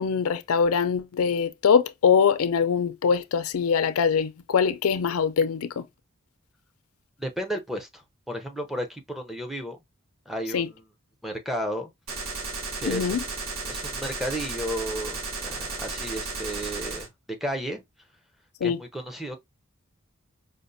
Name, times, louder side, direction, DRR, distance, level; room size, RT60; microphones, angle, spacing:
voice 1, 0.0-5.8 10.5-10.7 12.9-13.2 18.6-18.8, left 6 dB, 90° left, 0.4 m, -23 dB
voice 2, 7.2-9.8 10.3-10.8 11.2-11.9 12.8-13.2 13.6-17.1 17.4-17.8 18.6-19.4, equal, ahead, 0.5 m, -33 dB
Gunshot gunfire, 12.1-17.1, right 3 dB, 75° right, 1.0 m, -34 dB
5.1 x 2.1 x 2.6 m
head